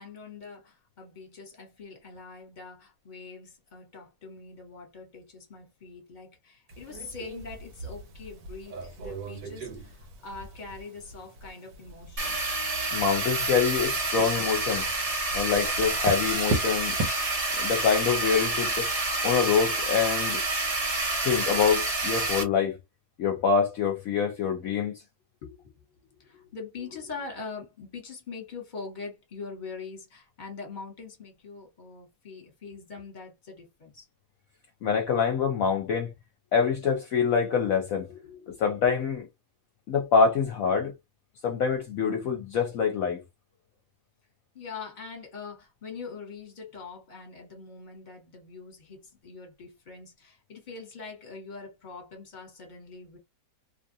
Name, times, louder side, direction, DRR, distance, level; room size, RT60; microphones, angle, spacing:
voice 1, 0.0-12.5 14.2-14.3 25.4-25.7 26.2-34.1 38.1-38.6 44.5-53.2, left 4 dB, 30° left, 1.2 m, -43 dB
sound 1, 6.7-17.1, right 2 dB, 75° right, 1.4 m, -38 dB
sound 2, 12.2-22.4, right 2 dB, 35° right, 0.6 m, -28 dB
voice 2, 12.9-14.8 15.3-17.0 17.6-18.9 19.2-20.4 21.2-22.8 23.2-24.9 34.8-36.1 36.5-38.1 38.6-39.3 39.9-40.9 41.4-43.2, left 6 dB, 65° left, 1.0 m, -25 dB
2.8 x 2.5 x 2.6 m
omnidirectional pair, 1.7 m